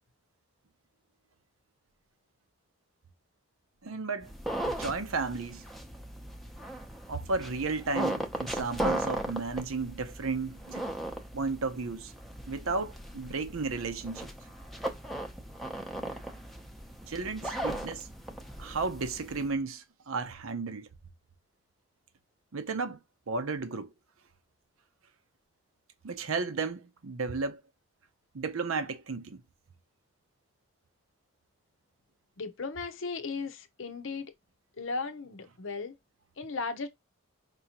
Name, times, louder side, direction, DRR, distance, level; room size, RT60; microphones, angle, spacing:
voice 1, 3.8-4.3 4.7-5.6 7.1-10.8 11.3-12.1 12.5-14.3 17.1-18.1 18.6-20.9 22.5-23.0 23.3-23.9 26.0-27.6 28.3-29.4, right 4 dB, 75° right, 0.7 m, -33 dB
sound 1, 4.2-19.5, right 1 dB, ahead, 0.7 m, -37 dB
voice 2, 32.4-34.3 34.8-35.9 36.4-36.9, left 4 dB, 65° left, 0.7 m, -36 dB
5.2 x 2.8 x 2.9 m
head